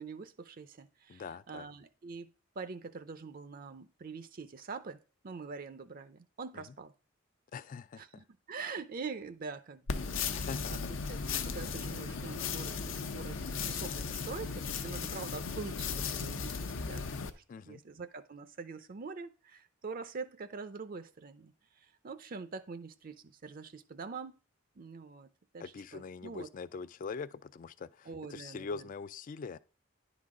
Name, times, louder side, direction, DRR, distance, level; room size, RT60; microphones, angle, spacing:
voice 1, 0.0-2.3 2.6-6.9 8.0-10.8 11.1-24.3 24.8-25.3 25.5-26.5 28.0-28.9, right 4 dB, 45° right, 0.5 m, -44 dB
voice 2, 1.1-1.6 7.5-8.2 10.3-10.8 17.5-17.8 25.6-29.6, left 5 dB, 40° left, 0.3 m, -43 dB
sound 1, 9.9-17.3, left 5 dB, 70° left, 0.7 m, -36 dB
10.5 x 4.0 x 4.8 m
head